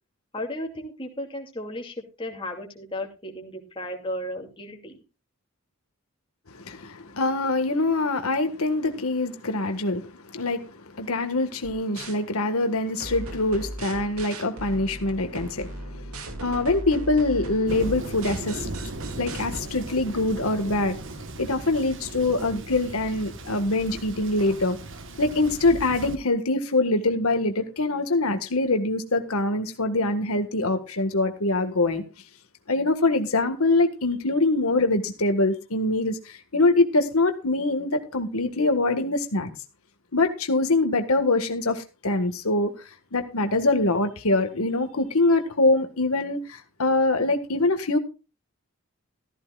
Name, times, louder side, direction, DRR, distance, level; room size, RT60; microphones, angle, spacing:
voice 1, 0.3-4.9, left 1 dB, 25° left, 2.6 m, -34 dB
voice 2, 6.5-18.9 19.2-21.0 21.4-24.8 25.2-32.0 32.7-39.5 40.1-42.7 43.1-48.0, left 2 dB, 85° left, 1.7 m, -24 dB
sound 1, 11.6-12.2 13.0-19.6, right 1 dB, 85° right, 2.3 m, -37 dB
Thunder, 17.7-26.2, right 2 dB, 60° right, 1.3 m, -37 dB
14.5 x 14.5 x 2.4 m
head